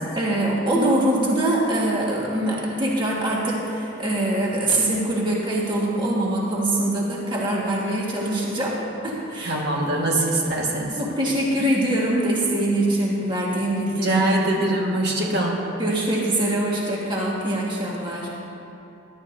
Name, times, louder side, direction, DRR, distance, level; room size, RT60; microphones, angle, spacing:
voice 1, 0.2-8.8 9.0-9.6 11.0-14.2 14.6-14.7 15.8-18.3, right 1 dB, 25° right, -4 dB, 1.8 m, -23 dB
voice 2, 9.4-11.0 14.0-15.7, right 1 dB, 55° right, -3 dB, 1.7 m, -23 dB
21.0 x 12.0 x 2.7 m, 2.8 s
head